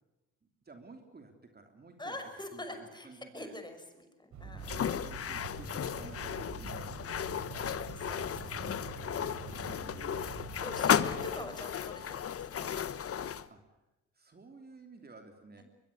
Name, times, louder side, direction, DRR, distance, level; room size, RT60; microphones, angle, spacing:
voice 1, 0.6-3.5 4.9-7.7 9.4-10.2 13.5-13.6 14.1-15.6, right 3 dB, 30° right, 5 dB, 3.2 m, -53 dB
voice 2, 2.0-5.5 7.8-8.9 9.4-12.7 15.6-15.7, left 1 dB, 15° left, 6 dB, 6.1 m, -46 dB
sound 1, 4.3-11.3, right 4 dB, 70° right, 5.5 m, -45 dB
sound 2, 4.6-13.5, left 8 dB, 50° left, 1.2 m, -34 dB
22.5 x 22.0 x 8.5 m, 0.97 s
cardioid pair, 90°, 30 cm